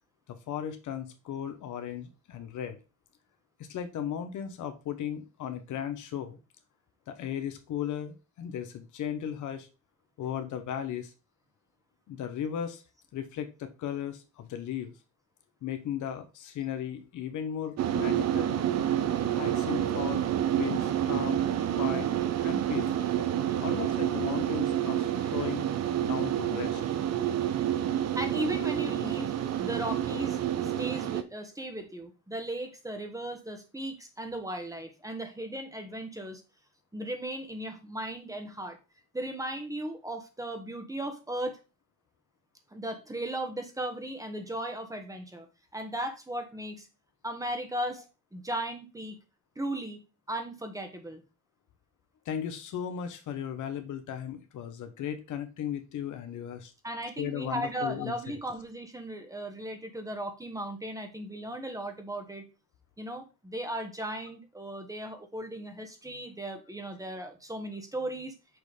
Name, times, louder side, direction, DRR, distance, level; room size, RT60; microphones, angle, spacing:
voice 1, 0.3-2.8 3.7-6.4 7.1-9.7 10.2-11.1 12.1-12.8 13.1-14.9 15.6-18.5 19.3-20.3 20.6-21.4 21.7-22.1 22.4-23.2 23.6-25.7 26.0-26.8 52.2-56.7 57.2-58.1, left 9 dB, 75° left, 8 dB, 1.1 m, -36 dB
sound 1, 17.8-31.2, right 11 dB, 60° right, 0.7 m, -28 dB
voice 2, 28.1-29.3 29.6-36.4 36.9-38.8 39.1-41.6 42.7-45.5 45.7-46.9 47.2-48.0 48.3-49.2 49.5-51.2 56.8-62.4 63.0-68.3, right 1 dB, 10° right, 6 dB, 1.3 m, -36 dB
6.3 x 3.1 x 5.0 m, 0.30 s
cardioid pair, 90°, 30 cm